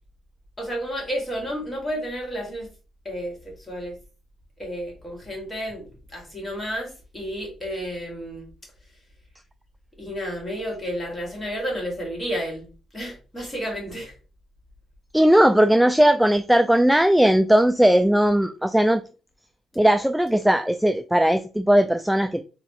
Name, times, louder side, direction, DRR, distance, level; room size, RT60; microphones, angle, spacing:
voice 1, 0.6-2.7 3.0-4.0 4.6-8.5 10.0-14.1, equal, 15° left, 2.2 m, -31 dB
voice 2, 15.1-19.0 19.8-22.4, right 1 dB, 5° right, 0.3 m, -18 dB
4.1 x 2.7 x 3.0 m
cardioid pair, 90°, 0 cm